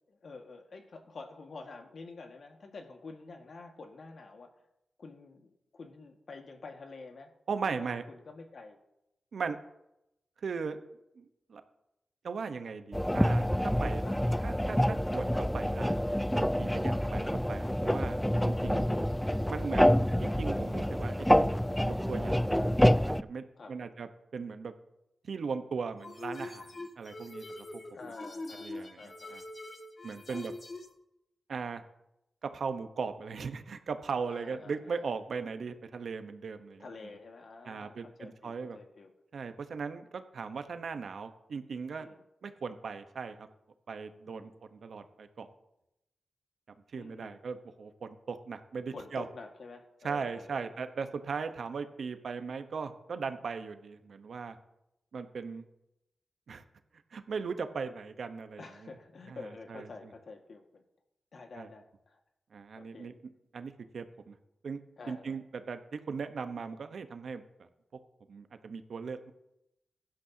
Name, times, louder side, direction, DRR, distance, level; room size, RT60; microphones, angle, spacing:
voice 1, 0.0-4.5 5.0-7.3 7.6-8.8 9.4-9.6 14.0-14.2 23.6-24.0 27.9-29.5 30.3-30.4 34.3-35.1 36.8-39.1 42.0-42.2 44.2-44.5 46.9-47.3 48.9-50.8 58.6-60.8 61.3-62.2 62.7-63.1 65.0-65.4, left 3 dB, 70° left, 4 dB, 1.7 m, -49 dB
voice 2, 7.5-8.0 9.3-9.6 10.4-10.8 11.2-11.6 12.2-14.0 14.4-18.9 19.5-19.8 20.2-21.4 21.8-22.9 23.2-24.7 25.2-27.4 28.6-29.4 30.0-30.5 31.5-31.8 32.4-36.9 37.6-38.8 39.3-42.1 42.4-43.5 43.9-45.5 46.9-49.2 50.0-54.5 55.1-55.6 56.5-56.6 57.1-58.6 59.3-59.4 59.7-59.9 61.5-61.7 62.5-63.1 63.5-64.3 64.6-64.8 65.1-67.4 68.3-69.3, right 5 dB, 75° right, 8 dB, 1.0 m, -38 dB
sound 1, 12.9-23.2, equal, 5° left, 0.4 m, -27 dB
sound 2, 26.0-30.9, left 2 dB, 50° left, 1.8 m, -43 dB
16.0 x 11.5 x 2.8 m, 0.88 s
cardioid pair, 60°, 0 cm